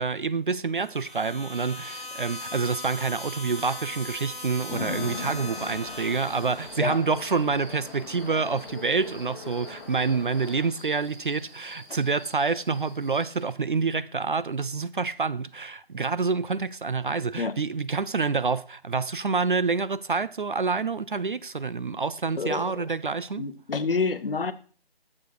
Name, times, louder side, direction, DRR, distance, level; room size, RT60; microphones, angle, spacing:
voice 1, 0.0-23.4, right 4 dB, 55° right, 0.4 m, -27 dB
sound 1, 0.7-6.9, left 2 dB, ahead, 2.8 m, -39 dB
sound 2, 1.5-13.4, equal, 20° right, 4.3 m, -50 dB
Chatter / Traffic noise roadway noise / Train, 4.7-10.6, left 3 dB, 25° left, 2.3 m, -39 dB
voice 2, 22.4-22.9 23.4-24.5, left 4 dB, 60° left, 0.9 m, -28 dB
9.3 x 7.3 x 4.7 m
figure-of-eight pair, 160°, 31 cm